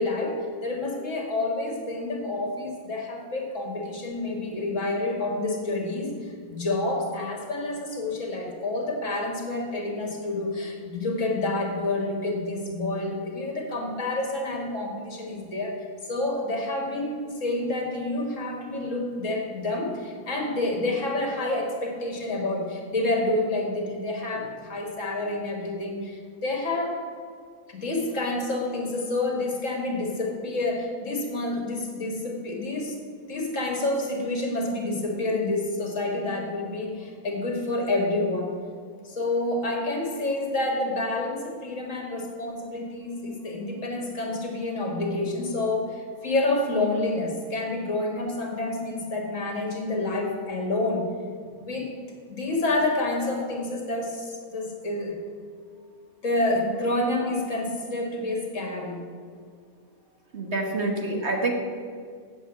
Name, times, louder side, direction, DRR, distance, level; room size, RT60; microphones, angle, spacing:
voice 1, 0.0-27.0 27.7-33.0 33.3-38.5 39.0-51.1 51.6-51.9 52.3-55.2 56.2-59.0, left 2 dB, 60° left, 1 dB, 2.1 m, -28 dB
voice 2, 60.3-61.5, right 2 dB, 50° right, 2 dB, 1.5 m, -27 dB
8.0 x 7.7 x 7.9 m, 2.1 s
omnidirectional pair, 1.5 m